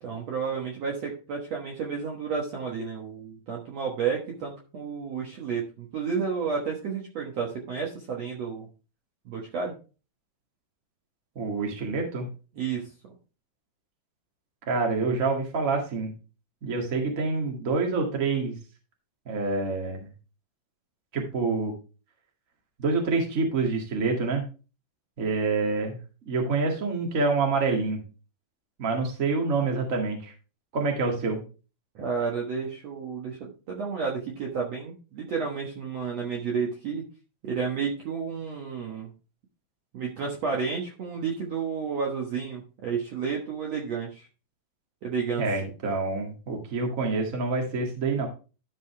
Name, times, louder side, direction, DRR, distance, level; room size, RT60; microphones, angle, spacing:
voice 1, 0.0-8.7 9.3-9.7 12.5-12.9 32.0-37.0 37.4-39.1 39.9-44.3 45.0-45.5, right 6 dB, 60° right, -1 dB, 1.9 m, -31 dB
voice 2, 11.3-12.3 14.7-16.1 16.6-18.5 19.2-20.1 21.1-21.7 22.8-24.4 25.2-26.0 26.2-28.0 28.8-30.3 30.7-31.4 45.4-48.3, right 3 dB, 30° right, 1 dB, 1.5 m, -27 dB
12.5 x 5.3 x 3.3 m, 0.34 s
omnidirectional pair, 4.4 m